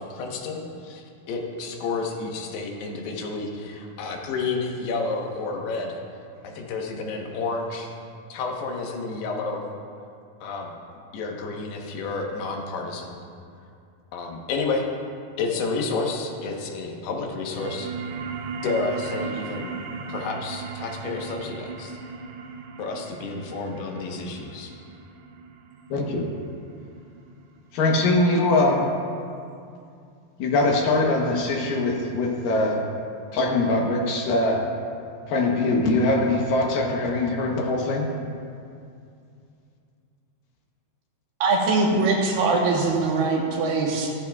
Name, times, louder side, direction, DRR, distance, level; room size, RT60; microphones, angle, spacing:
voice 1, 0.0-6.0 6.4-7.9 8.3-9.7 10.4-10.7 11.1-13.2 14.1-14.9 15.4-17.9 18.6-19.7 20.1-22.0 22.8-24.7, left 3 dB, 85° left, 1 dB, 3.2 m, -30 dB
sound 1, 17.3-28.4, right 5 dB, 90° right, 2.7 m, -37 dB
voice 2, 25.9-26.3 27.7-28.8 30.4-32.8 33.3-34.6 35.3-38.1, left 2 dB, 70° left, 0 dB, 2.4 m, -22 dB
voice 3, 41.4-44.1, right 3 dB, 70° right, -1 dB, 2.7 m, -22 dB
15.0 x 14.0 x 2.3 m, 2.5 s
omnidirectional pair, 4.5 m